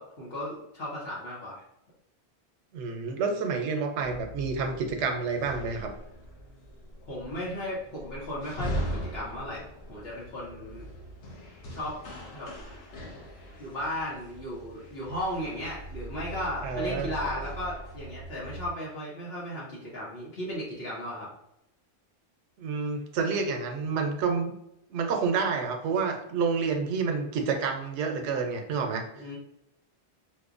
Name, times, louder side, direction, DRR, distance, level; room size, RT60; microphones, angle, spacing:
voice 1, 0.0-1.6 7.1-9.6 9.9-10.8 11.7-12.0 12.3-12.5 13.6-21.3 29.1-29.4, left 1 dB, 65° left, -6 dB, 1.0 m, -35 dB
voice 2, 2.7-5.9 16.6-17.1 22.6-24.5 24.9-29.0, right 5 dB, 90° right, 4 dB, 0.9 m, -29 dB
sound 1, 4.0-18.7, right 1 dB, 85° left, 1.0 m, -40 dB
4.4 x 2.1 x 2.4 m, 0.81 s
omnidirectional pair, 1.1 m